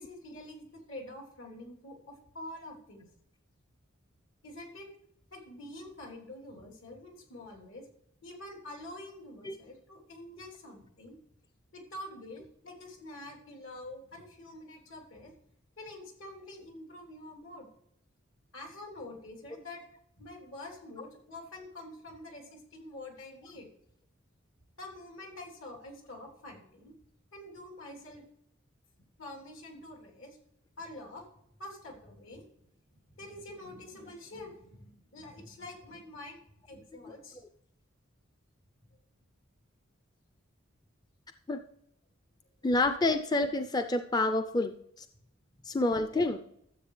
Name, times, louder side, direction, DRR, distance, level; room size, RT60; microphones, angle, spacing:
voice 1, 0.0-3.1 4.4-4.9 5.3-7.9 8.2-11.2 11.7-15.4 15.8-17.7 18.5-19.8 20.2-23.7 24.8-26.9 27.3-28.2 29.2-30.4 30.8-31.2 31.6-32.4 33.2-37.4, left 1 dB, 80° left, 0 dB, 3.3 m, -46 dB
voice 2, 42.6-45.1 45.7-46.4, left 2 dB, 20° left, 8 dB, 0.4 m, -28 dB
13.5 x 7.6 x 3.2 m, 0.71 s
head